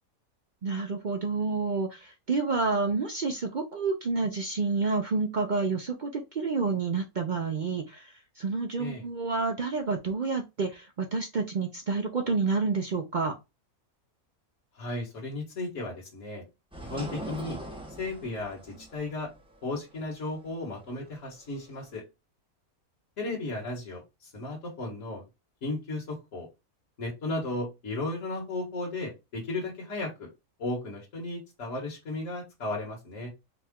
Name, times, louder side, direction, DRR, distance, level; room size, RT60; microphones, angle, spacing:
voice 1, 0.6-13.3, right 4 dB, 60° right, 0.5 m, -29 dB
voice 2, 14.8-16.4 16.8-17.6 18.0-19.3 19.6-22.0 23.2-24.0 24.3-25.2 25.6-26.5 27.0-30.3 30.6-33.3, left 2 dB, 60° left, 1.8 m, -35 dB
sound 1, 16.7-21.9, right 1 dB, 5° right, 0.7 m, -42 dB
4.8 x 2.3 x 3.5 m
omnidirectional pair, 1.5 m